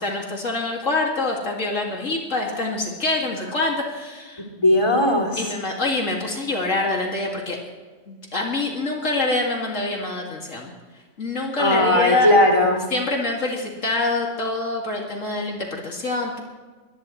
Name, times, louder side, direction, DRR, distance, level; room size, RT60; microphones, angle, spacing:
voice 1, 0.0-4.4 5.4-7.6 8.1-10.7 11.2-12.3 12.9-16.4, left 2 dB, 70° left, -1 dB, 2.7 m, -25 dB
voice 2, 4.6-5.5 11.6-12.8, left 1 dB, 25° left, -2 dB, 3.2 m, -18 dB
22.5 x 20.0 x 3.2 m, 1.4 s
omnidirectional pair, 1.4 m